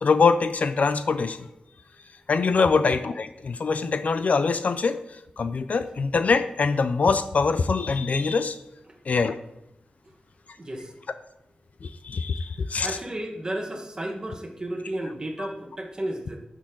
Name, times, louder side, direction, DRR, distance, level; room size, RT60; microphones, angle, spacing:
voice 1, 0.0-1.5 2.3-5.0 5.4-8.6 9.1-9.4 11.8-13.0 15.4-15.5, left 4 dB, 60° left, 11 dB, 0.4 m, -23 dB
voice 2, 10.6-10.9 12.8-16.4, right 1 dB, 25° right, 2 dB, 1.4 m, -33 dB
12.0 x 6.4 x 3.8 m, 0.86 s
wide cardioid pair, 145°, 3 cm